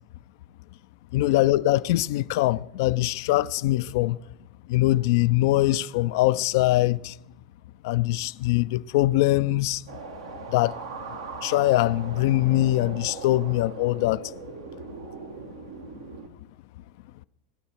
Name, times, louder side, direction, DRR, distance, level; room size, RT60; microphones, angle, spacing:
voice 1, 1.1-4.2 4.7-7.2 7.8-9.8 10.5-10.8 11.4-14.3, left 16 dB, 60° left, 0.3 m, -22 dB
sound 1, 9.9-16.3, right 4 dB, 85° right, 1.4 m, -40 dB
19.0 x 6.8 x 4.3 m
hypercardioid pair, 90°, 2 cm